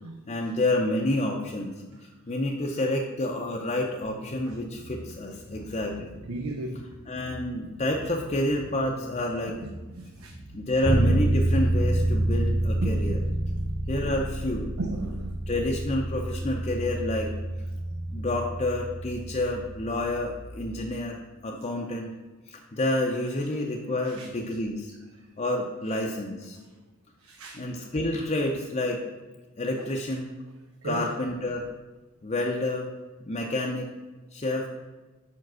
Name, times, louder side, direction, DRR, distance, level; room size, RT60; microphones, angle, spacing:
voice 1, 0.3-1.7 2.3-6.1 7.1-9.6 10.5-13.2 13.9-14.7 15.5-17.3 18.1-22.1 22.5-24.9 25.4-26.6 27.5-29.0 29.6-30.3 30.8-31.7 32.2-32.9 33.3-33.9 34.3-34.7, left 1 dB, 30° left, 0 dB, 0.6 m, -29 dB
sound 1, 4.0-13.6, right 1 dB, 55° right, 1.2 m, -45 dB
voice 2, 6.3-6.8 10.2-10.3 12.8-13.2 13.6-13.7 14.1-14.2 14.8-15.4 17.9-18.0 24.0-24.3 27.2-27.6 29.8-29.9 30.8-31.1, right 2 dB, 80° right, 4 dB, 0.6 m, -34 dB
Bass guitar, 10.8-20.7, right 1 dB, 15° left, 0.9 m, -28 dB
5.3 x 4.7 x 6.1 m, 1.2 s
head